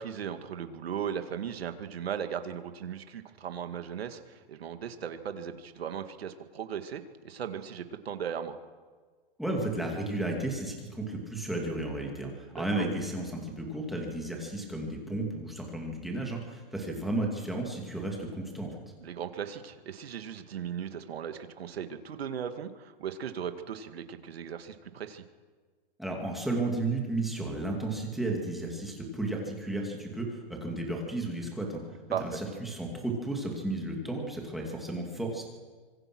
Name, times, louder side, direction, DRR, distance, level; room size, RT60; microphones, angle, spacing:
voice 1, 0.0-8.6 12.5-12.8 19.0-25.2 32.1-32.4, right 8 dB, 80° right, 8 dB, 2.2 m, -37 dB
voice 2, 9.4-18.8 26.0-31.8 32.2-35.4, right 2 dB, ahead, -1 dB, 2.4 m, -33 dB
25.5 x 23.5 x 6.2 m, 1.5 s
hypercardioid pair, 175°, 30 cm